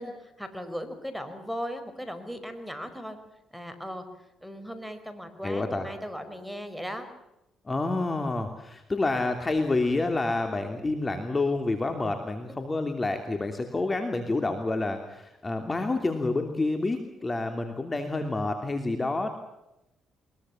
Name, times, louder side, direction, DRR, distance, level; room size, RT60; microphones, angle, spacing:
voice 1, 0.0-3.2 3.5-4.0 4.4-7.1, equal, ahead, 8 dB, 4.9 m, -37 dB
voice 2, 5.4-5.9 7.6-19.3, left 2 dB, 25° left, 6 dB, 3.0 m, -28 dB
23.0 x 22.0 x 7.3 m, 0.89 s
cardioid pair, 90°, 0 cm